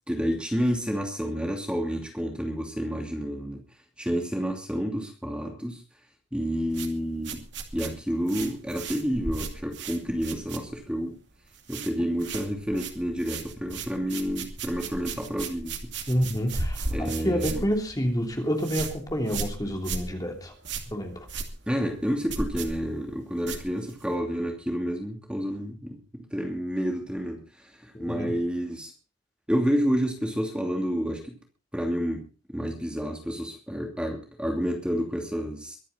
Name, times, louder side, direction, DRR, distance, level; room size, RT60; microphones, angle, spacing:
voice 1, 0.1-3.6 4.0-5.8 6.3-7.4 7.7-11.2 11.7-15.7 16.9-17.6 21.7-28.9 29.5-31.3 31.7-35.8, equal, 5° right, 2 dB, 2.8 m, -29 dB
sound 1, 6.7-11.1 11.3-11.9 12.2-24.2, right 3 dB, 65° right, 2.6 m, -36 dB
voice 2, 16.1-16.8 17.2-20.5 20.9-21.1 27.9-28.3, equal, 20° left, 3 dB, 3.2 m, -28 dB
23.5 x 10.0 x 4.1 m, 0.34 s
head